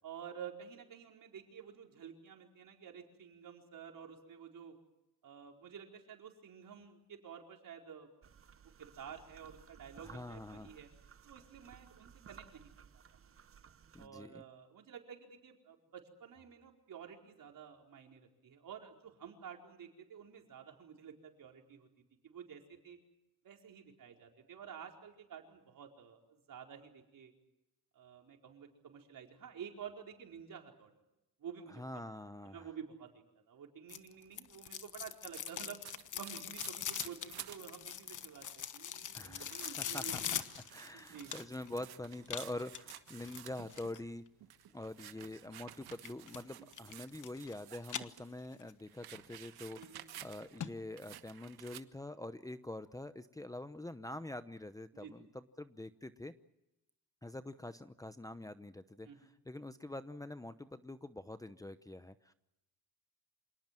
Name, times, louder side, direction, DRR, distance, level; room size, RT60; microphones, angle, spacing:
voice 1, 0.0-4.7 5.2-8.4 8.8-10.9 11.2-13.3 14.0-21.9 22.2-23.0 23.4-27.3 27.9-30.9 31.4-32.0 32.4-33.1 33.5-35.8 36.1-40.1 40.6-41.4 46.6-46.9 49.8-50.0 54.9-55.3 59.0-59.3, right 8 dB, 60° right, 2 dB, 4.7 m, -51 dB
sound 1, 8.2-14.1, right 7 dB, 35° right, 0.9 m, -58 dB
voice 2, 10.0-10.8 13.9-14.4 31.7-32.7 39.1-40.4 40.7-44.2 44.7-49.8 50.2-56.3 57.2-59.1 59.5-62.3, left 1 dB, 10° left, 10 dB, 0.8 m, -45 dB
sound 2, 33.9-41.7 42.3-44.0 45.9-46.4 46.7-47.6 47.8-48.7 49.1-49.2 49.8-49.9 50.2-50.3 50.6-50.7 51.1-51.2, left 9 dB, 55° left, 1.3 m, -42 dB
sound 3, 35.3-37.6 38.1-38.2 38.4-38.8 39.3-44.0 44.4-48.3 48.6-50.6 51.0-51.8, right 12 dB, 80° right, 1.4 m, -53 dB
27.0 x 18.5 x 7.6 m, 0.91 s
cardioid pair, 110°, 37 cm